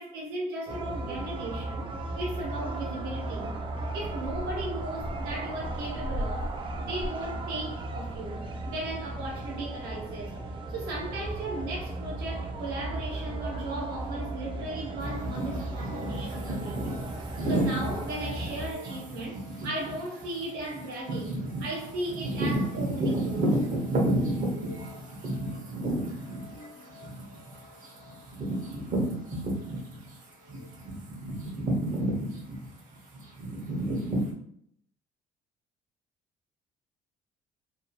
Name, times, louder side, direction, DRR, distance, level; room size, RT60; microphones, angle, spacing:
voice 1, 0.0-3.6 3.9-10.3 10.7-16.9 17.4-23.7, right 2 dB, 80° right, 1.0 m, -36 dB
sound 1, 0.7-18.7, right 2 dB, 35° right, 0.5 m, -35 dB
sound 2, 15.0-30.1 30.5-34.3, right 1 dB, 55° right, 0.9 m, -32 dB
2.7 x 2.2 x 2.8 m
cardioid pair, 90°, 16 cm